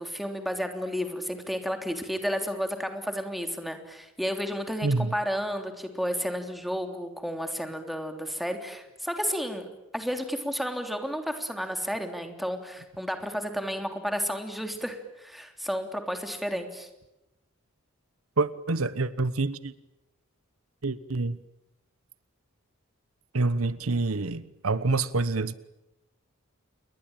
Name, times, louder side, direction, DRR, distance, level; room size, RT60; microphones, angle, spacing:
voice 1, 0.0-9.7 9.9-16.9, equal, ahead, 5 dB, 3.3 m, -32 dB
voice 2, 4.8-5.1 18.4-19.7 20.8-21.4 23.3-25.5, right 3 dB, 85° right, 16 dB, 1.1 m, -27 dB
28.5 x 22.5 x 9.0 m, 0.93 s
head